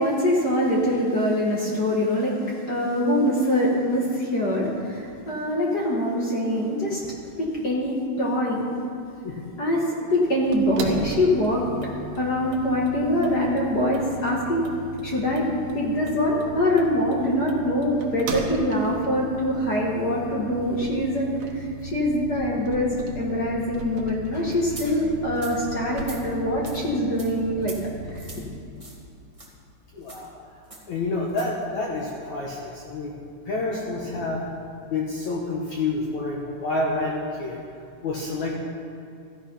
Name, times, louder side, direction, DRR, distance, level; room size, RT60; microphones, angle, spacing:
voice 1, 0.0-2.4 2.7-7.0 7.4-8.6 9.6-14.7 15.0-15.5 15.7-21.7 21.9-27.8 28.1-28.3, left 1 dB, 45° left, -4 dB, 1.3 m, -24 dB
sound 1, 10.5-28.4, right 2 dB, 75° right, 3.3 m, -38 dB
sound 2, 24.7-24.9 25.3-25.6 26.0-26.2 26.6-26.8 27.2-27.3 27.6-27.8 28.1-28.4 28.8-29.0 29.3-29.5 30.0-30.2 30.7-30.8 31.3-31.5, right 2 dB, 30° right, 0.5 m, -41 dB
voice 2, 29.9-30.3 30.9-33.1 33.5-34.4 34.9-37.6 38.0-38.6, left 2 dB, 60° left, -3 dB, 2.1 m, -28 dB
14.5 x 12.0 x 5.7 m, 2.5 s
omnidirectional pair, 4.7 m